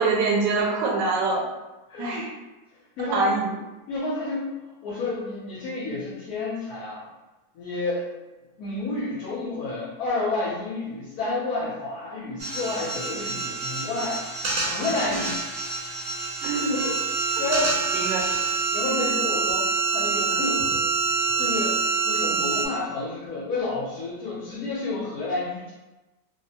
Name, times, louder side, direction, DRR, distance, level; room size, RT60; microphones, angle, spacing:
voice 1, 0.0-1.4 2.0-2.3 3.1-3.4 16.4-16.7 17.9-18.2 22.3-22.4, right 3 dB, 80° right, -1 dB, 1.2 m, -24 dB
voice 2, 1.9-2.3 3.0-3.2 3.9-4.5 4.8-7.0 7.5-8.1 8.6-14.2 14.6-15.4 16.7-17.0 17.4-18.0 18.7-19.6 19.9-20.6 21.4-21.8 22.0-25.7, left 2 dB, 65° left, -7 dB, 1.0 m, -30 dB
sound 1, 12.4-22.7, right 4 dB, 60° right, 0.8 m, -26 dB
3.4 x 2.0 x 2.7 m, 1.1 s
omnidirectional pair, 2.0 m